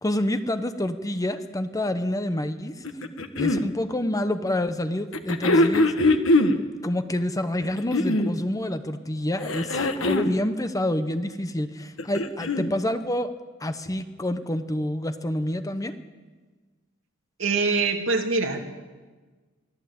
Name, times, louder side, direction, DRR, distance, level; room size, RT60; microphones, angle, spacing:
voice 1, 0.0-5.9 6.8-13.3 13.6-15.9, left 1 dB, 15° left, 9 dB, 0.9 m, -28 dB
sound 1, 2.8-3.6 5.1-6.6 7.6-8.4 9.4-10.4 11.8-12.7 13.9-14.0, left 2 dB, 70° left, 1.4 m, -22 dB
voice 2, 17.4-18.7, right 4 dB, 65° right, 3 dB, 2.6 m, -24 dB
24.0 x 14.5 x 8.6 m, 1.3 s
head